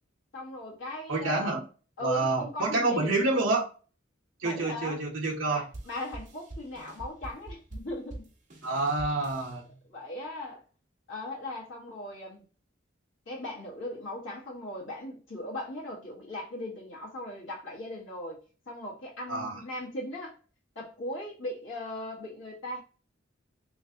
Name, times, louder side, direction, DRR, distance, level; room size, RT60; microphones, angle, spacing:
voice 1, 0.3-1.5 2.0-3.5 4.4-5.0 5.5-8.3 9.9-10.6 11.1-12.5 13.2-18.4 18.7-20.4 20.7-22.8, left 1 dB, 75° left, 1.4 m, -38 dB
voice 2, 1.1-1.6 2.0-3.6 4.4-5.6 8.6-9.6 19.3-19.6, right 3 dB, 75° right, 0.9 m, -28 dB
sound 1, 5.7-9.6, right 2 dB, 40° right, 0.9 m, -44 dB
3.2 x 3.2 x 2.8 m
head